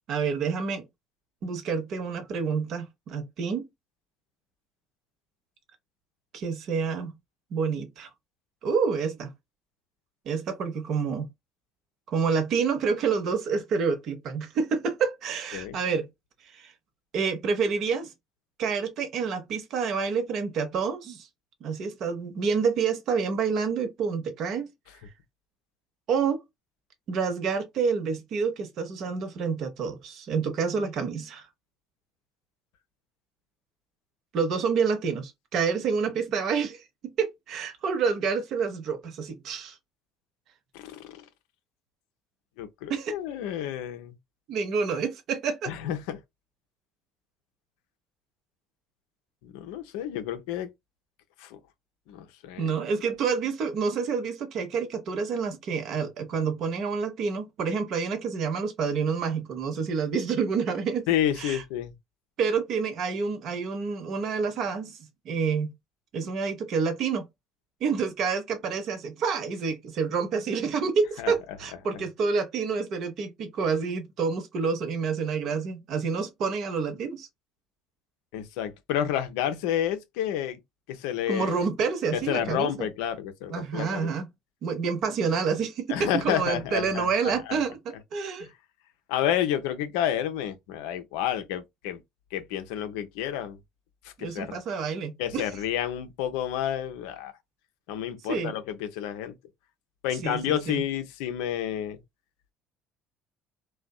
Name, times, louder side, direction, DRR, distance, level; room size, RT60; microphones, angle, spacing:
voice 1, 0.1-0.8 1.4-3.6 6.3-7.1 7.5-8.1 8.6-9.3 10.3-11.3 12.1-16.1 16.5-16.7 17.1-18.1 18.6-21.3 21.6-24.7 26.1-26.4 27.1-31.5 34.3-36.8 37.2-39.8 42.9-43.1 44.5-45.7 52.6-61.1 61.4-61.6 62.4-65.0 65.2-65.7 66.1-67.2 67.8-77.3 81.3-82.9 83.5-84.3 84.6-88.5 94.2-95.5 98.3-98.5 100.2-100.8, right 5 dB, 60° right, 0.7 m, -28 dB
voice 2, 40.7-41.2 42.6-44.1 45.6-46.2 49.4-50.7 51.4-51.6 52.1-52.7 61.1-61.9 71.2-71.3 78.3-80.6 80.9-81.7 82.1-84.1 85.9-87.3 88.4-88.5 89.1-92.0 92.3-93.6 94.0-94.6 95.2-97.3 97.9-99.3 100.0-102.0, left 10 dB, 75° left, 0.4 m, -30 dB
2.6 x 2.1 x 2.2 m
hypercardioid pair, 60°, 0 cm